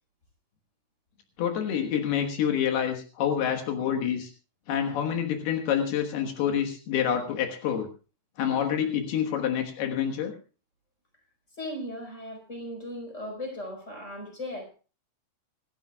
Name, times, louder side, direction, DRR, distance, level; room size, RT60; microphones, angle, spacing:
voice 1, 1.4-4.3 4.7-7.9 8.4-10.3, left 9 dB, 80° left, 4 dB, 3.4 m, -27 dB
voice 2, 11.6-14.7, left 1 dB, 20° left, 3 dB, 4.8 m, -37 dB
26.5 x 12.5 x 2.3 m, 0.34 s
omnidirectional pair, 4.5 m